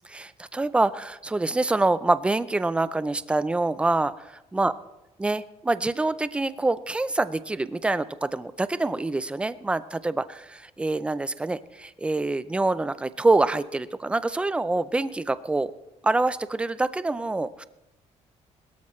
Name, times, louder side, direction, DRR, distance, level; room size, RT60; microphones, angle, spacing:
voice 1, 0.1-4.7 5.2-15.7 16.0-17.6, right 2 dB, 10° right, 14 dB, 0.4 m, -26 dB
22.0 x 13.0 x 3.1 m, 0.95 s
cardioid pair, 165°, 12 cm